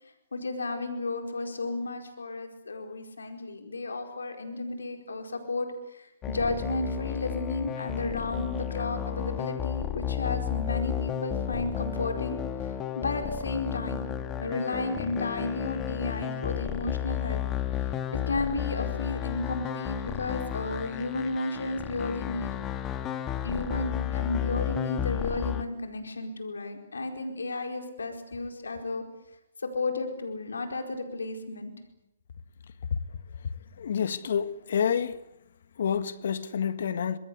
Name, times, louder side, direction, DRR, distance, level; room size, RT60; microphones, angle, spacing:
voice 1, 0.0-12.4 12.6-14.1 14.4-17.4 18.1-22.6 23.4-29.0 29.6-31.7, left 2 dB, 85° left, 4.6 m, -33 dB
sound 1, 6.2-25.6, left 10 dB, 20° left, 1.8 m, -33 dB
voice 2, 33.8-35.2 35.8-37.2, left 7 dB, 65° left, 1.7 m, -28 dB
26.0 x 22.0 x 8.2 m
hypercardioid pair, 135°, 0 cm